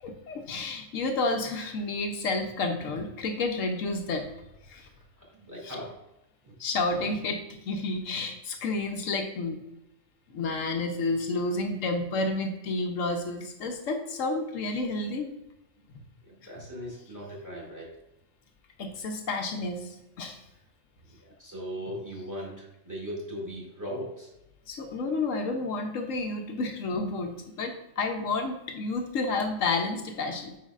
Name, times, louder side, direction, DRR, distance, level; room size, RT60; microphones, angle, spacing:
voice 1, 0.0-4.3 4.7-4.9 5.6-5.8 6.6-7.4 7.6-9.6 10.3-15.3 15.9-16.0 16.5-16.7 18.8-20.4 24.7-30.6, left 3 dB, 75° left, 4 dB, 1.1 m, -30 dB
voice 2, 5.3-5.9 6.4-6.5 16.2-17.9 21.4-24.3, equal, 15° right, -4 dB, 2.2 m, -38 dB
9.4 x 4.7 x 2.4 m, 0.92 s
omnidirectional pair, 1.4 m